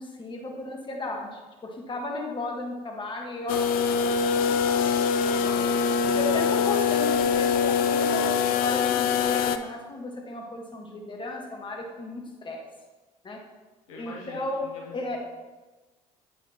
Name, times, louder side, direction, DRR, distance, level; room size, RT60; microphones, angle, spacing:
voice 1, 0.0-4.2 6.1-12.6 13.2-13.4 14.0-14.7 14.9-15.2, left 2 dB, 30° left, 1 dB, 1.4 m, -34 dB
sound 1, 3.5-9.6, left 6 dB, 55° left, 0.4 m, -23 dB
voice 2, 5.1-6.5 13.9-15.2, left 2 dB, 80° left, -2 dB, 1.1 m, -44 dB
8.0 x 6.0 x 2.9 m, 1.2 s
hypercardioid pair, 55°, 18 cm